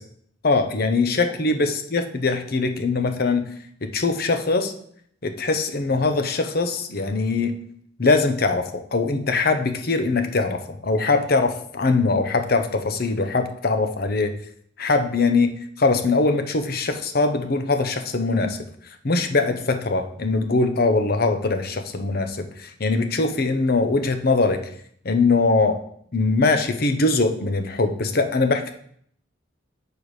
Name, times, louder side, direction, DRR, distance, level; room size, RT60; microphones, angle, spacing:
voice 1, 0.4-3.5 3.8-4.7 5.2-7.6 8.0-14.3 14.8-18.6 19.0-24.6 25.0-25.8 26.1-28.7, left 3 dB, 50° left, 7 dB, 0.8 m, -22 dB
6.6 x 4.6 x 4.8 m, 0.64 s
head